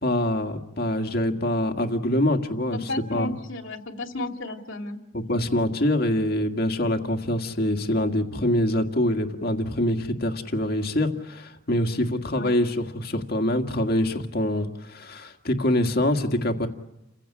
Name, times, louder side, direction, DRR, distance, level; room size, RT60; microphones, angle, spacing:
voice 1, 0.0-3.4 5.1-16.7, left 1 dB, 55° left, 5 dB, 1.9 m, -25 dB
voice 2, 2.7-5.0 12.3-12.5, left 2 dB, 80° left, 4 dB, 2.6 m, -33 dB
30.0 x 16.0 x 8.7 m, 0.94 s
head